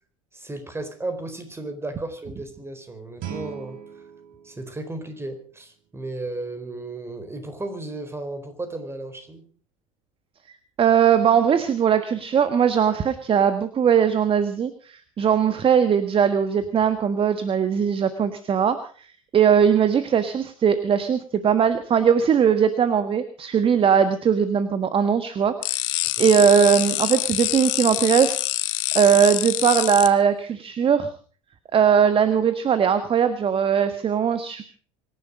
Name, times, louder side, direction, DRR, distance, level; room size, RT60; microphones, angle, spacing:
voice 1, 0.3-4.0 4.4-9.4 26.2-26.3, right 2 dB, 15° right, 9 dB, 4.4 m, -34 dB
Guitar, 3.2-5.9, right 8 dB, 55° right, 5.1 m, -40 dB
voice 2, 10.8-19.1 19.3-28.4 28.9-31.1 31.7-34.6, right 7 dB, 30° right, 11 dB, 1.5 m, -20 dB
sound 1, 25.6-30.1, left 17 dB, 65° left, 1.3 m, -26 dB
25.0 x 11.0 x 5.1 m, 0.42 s
hypercardioid pair, 75°, 17 cm